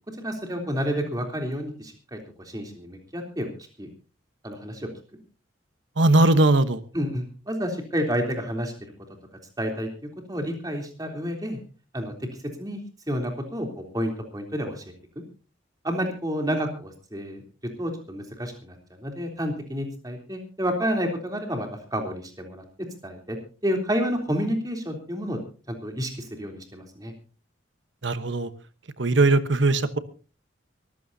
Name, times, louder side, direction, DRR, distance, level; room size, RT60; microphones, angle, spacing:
voice 1, 0.2-3.5 3.8-3.9 4.4-4.9 6.9-8.7 9.6-9.9 10.3-11.6 11.9-12.3 12.6-12.8 13.1-14.8 15.8-17.4 17.8-22.6 23.0-23.4 23.6-25.4 25.7-27.1, equal, 20° right, 3 dB, 3.4 m, -30 dB
voice 2, 6.0-6.8 16.5-16.6 28.0-28.5 29.0-30.0, right 2 dB, 70° right, 12 dB, 1.1 m, -20 dB
23.5 x 15.0 x 2.8 m, 0.35 s
head